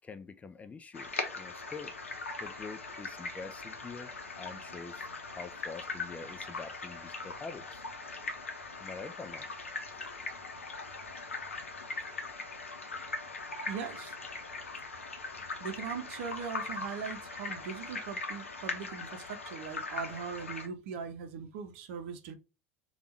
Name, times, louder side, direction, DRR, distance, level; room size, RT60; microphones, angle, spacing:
voice 1, 0.0-2.0 2.4-7.8 8.8-9.6 9.9-10.2, left 4 dB, 20° left, 0.4 m, -46 dB
sound 1, 0.9-20.7, left 3 dB, 85° left, 0.7 m, -40 dB
voice 2, 13.7-14.2 15.6-22.4, right 6 dB, 60° right, 0.7 m, -40 dB
3.4 x 2.4 x 4.3 m
figure-of-eight pair, 75°, 7 cm